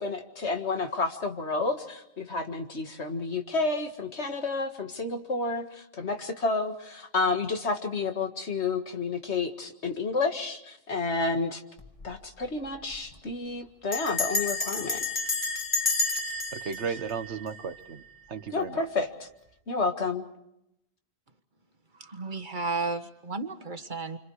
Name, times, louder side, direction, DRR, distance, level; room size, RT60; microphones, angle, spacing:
voice 1, 0.0-11.6 12.0-15.1 18.5-19.1 19.7-20.3, left 3 dB, 75° left, 5 dB, 2.1 m, -30 dB
Bell, 11.8-12.2 12.4-12.5 12.7-13.1 13.9-18.0, left 3 dB, 30° left, 2.3 m, -31 dB
voice 2, 16.5-18.0 18.3-18.9, right 6 dB, 80° right, 10 dB, 1.5 m, -34 dB
voice 3, 22.0-24.2, right 3 dB, 45° right, 7 dB, 1.6 m, -33 dB
28.5 x 26.0 x 4.8 m, 0.83 s
omnidirectional pair, 1.1 m